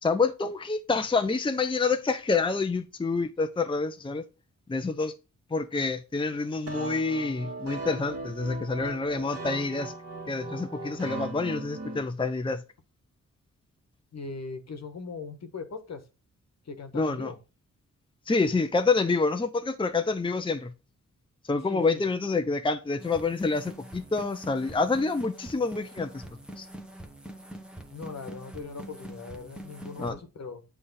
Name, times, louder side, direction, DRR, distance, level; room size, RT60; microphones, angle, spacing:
voice 1, 0.0-4.2 4.7-5.1 5.5-9.9 10.3-12.6 16.9-17.3 18.3-20.7 21.4-26.2 26.6-26.7 30.0-30.1, left 4 dB, 15° left, 0.6 m, -27 dB
sound 1, 6.7-12.0, right 2 dB, 50° right, 2.0 m, -38 dB
voice 2, 14.1-16.1 16.6-17.4 21.7-22.0 27.9-30.6, left 4 dB, 55° left, 1.3 m, -40 dB
sound 2, 23.0-30.1, right 1 dB, 5° right, 1.3 m, -44 dB
7.8 x 3.4 x 5.4 m
cardioid pair, 70°, 31 cm